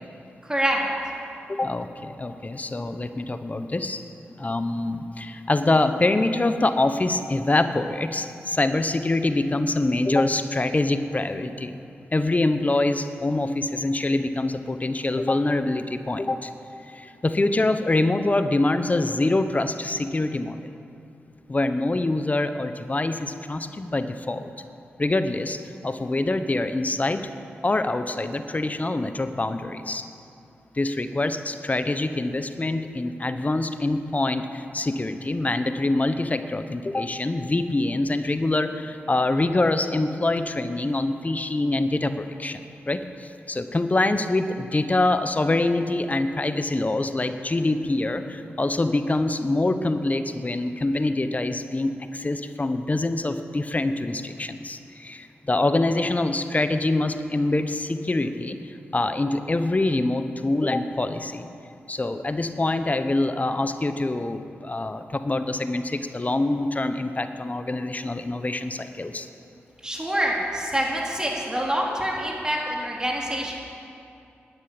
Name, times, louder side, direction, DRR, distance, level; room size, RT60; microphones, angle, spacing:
voice 1, 0.4-0.8 69.8-73.5, equal, 15° right, -2 dB, 3.7 m, -26 dB
voice 2, 1.5-4.1 4.4-11.8 12.1-16.5 16.9-20.6 21.5-24.5 25.0-27.2 27.6-30.1 30.7-42.6 42.9-61.5 61.9-69.3, left 2 dB, 35° left, 9 dB, 0.9 m, -25 dB
11.5 x 9.8 x 8.6 m, 2.6 s
supercardioid pair, 40°, 5 cm